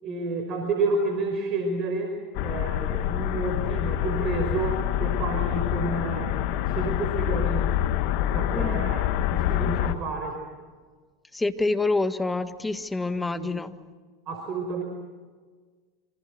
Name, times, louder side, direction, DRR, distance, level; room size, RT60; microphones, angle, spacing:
voice 1, 0.0-7.8 8.3-10.4 13.1-13.5 14.3-14.8, right 3 dB, 45° right, 4 dB, 5.2 m, -30 dB
sound 1, 2.3-9.9, left 12 dB, 60° left, 1.4 m, -26 dB
voice 2, 8.5-8.8 11.3-13.8, left 3 dB, 10° left, 10 dB, 1.7 m, -27 dB
27.5 x 26.0 x 6.4 m, 1.5 s
hypercardioid pair, 90°, 0 cm